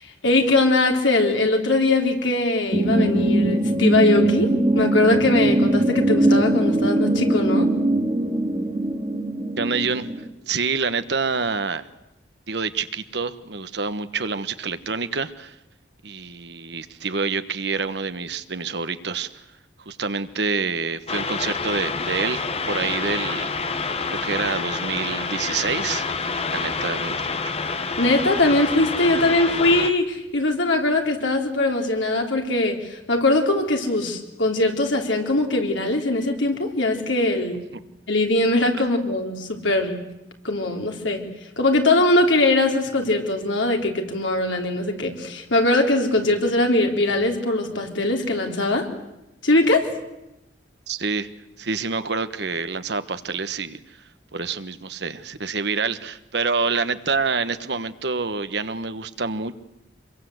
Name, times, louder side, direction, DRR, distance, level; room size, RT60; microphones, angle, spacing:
voice 1, 0.0-7.7 28.0-37.6 38.1-40.0 40.4-41.2 41.6-48.9 49.4-49.9, left 2 dB, 85° left, 3 dB, 3.6 m, -21 dB
sound 1, 2.7-10.2, right 1 dB, 30° right, 2.2 m, -21 dB
voice 2, 9.6-10.1 10.5-11.9 12.5-15.6 16.0-19.3 19.8-23.5 24.1-27.5 37.7-37.8 50.9-51.3 51.6-54.0 54.3-59.5, right 4 dB, 65° right, 12 dB, 1.2 m, -27 dB
sound 2, 21.1-29.9, left 4 dB, 35° left, 1.2 m, -27 dB
25.5 x 22.5 x 8.0 m, 0.93 s
head